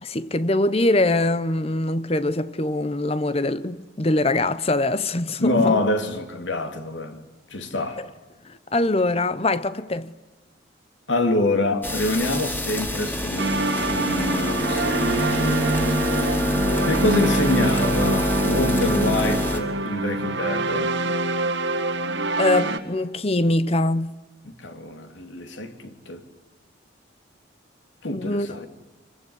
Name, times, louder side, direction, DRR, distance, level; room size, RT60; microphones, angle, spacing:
voice 1, 0.0-5.8 8.4-10.1 22.4-24.2 28.1-28.5, left 2 dB, 30° left, 0.8 m, -23 dB
voice 2, 5.4-7.2 7.5-8.0 11.1-15.7 16.8-20.9 24.4-26.2 28.0-28.7, left 1 dB, 75° left, 2.9 m, -26 dB
sound 1, 11.8-19.6, left 1 dB, 10° left, 2.9 m, -25 dB
sound 2, 13.4-22.8, right 2 dB, 70° right, 2.1 m, -25 dB
26.0 x 23.5 x 9.7 m
head